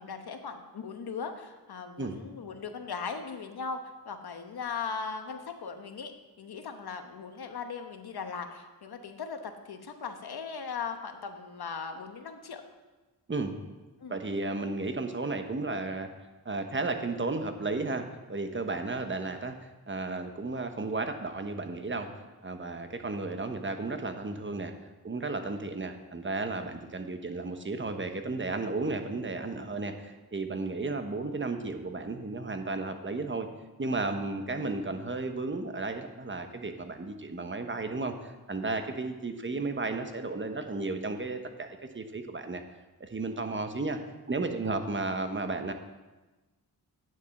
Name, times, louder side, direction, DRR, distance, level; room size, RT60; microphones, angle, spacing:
voice 1, 0.0-6.1 6.4-12.6 14.0-14.2, left 5 dB, 75° left, 6 dB, 1.2 m, -38 dB
voice 2, 14.1-16.1 16.4-24.7 25.0-33.5 33.8-42.6 43.0-44.0 44.3-45.7, right 3 dB, 30° right, 7 dB, 1.1 m, -33 dB
9.5 x 7.2 x 6.5 m, 1.2 s
cardioid pair, 75°, 39 cm